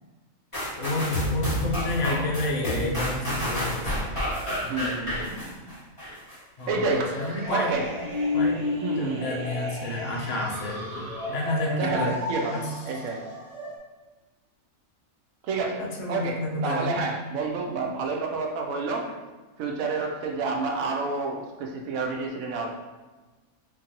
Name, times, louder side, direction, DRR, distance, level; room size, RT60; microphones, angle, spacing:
sound 1, 0.5-6.4 6.9-7.0, equal, 25° left, 1.5 m, -30 dB
voice 1, 0.8-4.1 6.6-6.7 7.1-7.7 8.3-8.6 9.0-12.2 12.5-12.7 15.8-17.0, left 2 dB, 65° left, -2 dB, 1.0 m, -30 dB
voice 2, 4.6-5.7 6.7-7.2 7.5-7.9 8.8-9.2 11.7-13.2 15.4-19.1 19.6-22.7, right 3 dB, 75° right, 1 dB, 1.0 m, -29 dB
sound 2, 6.7-13.8, left 2 dB, 55° right, 0.4 m, -32 dB
4.4 x 2.6 x 2.8 m, 1.2 s
omnidirectional pair, 1.5 m